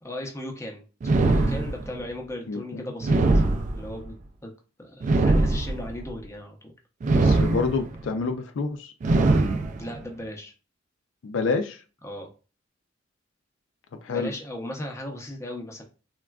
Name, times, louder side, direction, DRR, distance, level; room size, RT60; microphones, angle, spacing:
voice 1, 0.0-0.8 1.1-3.4 3.7-4.2 4.4-4.5 4.8-6.7 9.8-10.5 12.0-12.3 14.1-15.8, left 1 dB, 15° left, 0.6 m, -37 dB
sound 1, 1.0-2.1 3.0-4.1 5.0-6.1 7.0-8.1 9.0-10.1, right 2 dB, 40° right, 0.3 m, -22 dB
voice 2, 2.5-2.9 7.1-8.9 11.2-11.8 14.0-14.3, left 4 dB, 80° left, 0.4 m, -28 dB
3.5 x 2.2 x 2.3 m
head